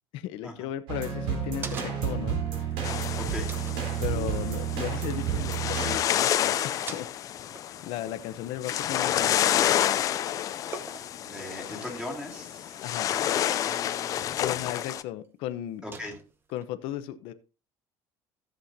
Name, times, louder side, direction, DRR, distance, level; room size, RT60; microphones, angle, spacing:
voice 1, 0.1-2.7 4.0-7.1 7.8-10.0 11.7-12.0 12.8-13.1 14.4-15.9 16.5-17.3, left 12 dB, 70° left, 11 dB, 0.8 m, -36 dB
sound 1, 0.9-2.3 2.7-2.8 3.5-3.9 5.3-5.4 5.6-5.9 6.1-6.4 6.6-9.5 9.8-10.2 10.7-11.3 12.0-12.5 13.4-13.8 14.4-14.5 15.9-16.6, right 4 dB, 25° right, 0.9 m, -44 dB
sound 2, 0.9-6.0, right 8 dB, 80° right, 3.8 m, -30 dB
sound 3, 2.8-15.0, left 11 dB, 40° left, 0.5 m, -29 dB
voice 2, 3.2-3.5 11.2-12.8 13.1-13.2 13.5-14.1 15.8-16.1, left 1 dB, 5° right, 1 dB, 2.4 m, -39 dB
14.5 x 7.6 x 2.7 m, 0.31 s
cardioid pair, 165°, 9 cm